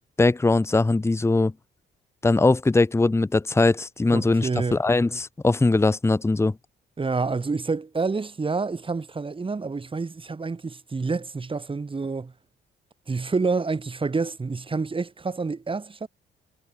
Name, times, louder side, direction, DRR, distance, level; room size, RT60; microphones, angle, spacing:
voice 1, 0.2-1.5 2.2-6.6, left 3 dB, 15° left, 0.9 m, -21 dB
voice 2, 4.1-4.8 7.0-12.3 13.1-16.1, right 4 dB, 25° right, 3.1 m, -28 dB
cardioid pair, 90°, 20 cm